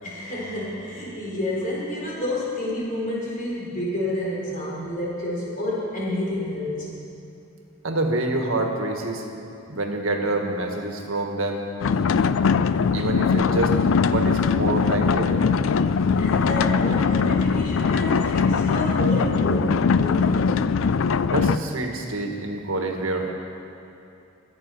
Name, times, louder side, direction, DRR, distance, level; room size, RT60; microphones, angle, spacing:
voice 1, 0.0-6.9 16.2-20.4, left 1 dB, 40° left, -5 dB, 4.3 m, -29 dB
voice 2, 7.8-9.3 9.7-11.6 12.9-13.7 14.0-15.5 21.3-23.3, right 2 dB, 80° right, 3 dB, 1.6 m, -26 dB
sound 1, 11.8-21.6, left 5 dB, 75° left, 0.4 m, -21 dB
23.0 x 8.7 x 5.5 m, 2.7 s
head